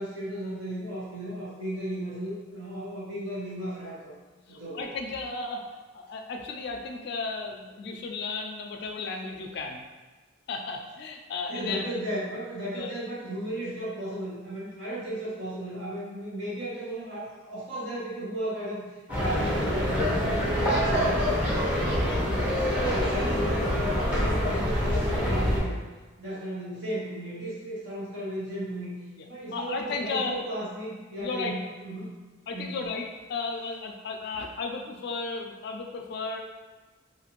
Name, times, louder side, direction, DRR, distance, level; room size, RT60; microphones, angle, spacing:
voice 1, 0.0-4.1 4.5-5.0 11.5-18.8 19.2-22.4 22.8-25.7 26.2-29.0 29.3-32.1 32.5-32.8, right 1 dB, 65° right, -9 dB, 1.1 m, -35 dB
voice 2, 4.5-5.6 5.9-9.8 10.5-11.8 12.7-13.0 22.9-23.0 29.5-30.4 31.2-31.6 32.5-36.4, left 4 dB, 55° left, 3 dB, 0.3 m, -34 dB
sound 1, 19.1-25.6, equal, 5° right, 0.6 m, -26 dB
2.5 x 2.5 x 2.9 m, 1.3 s
head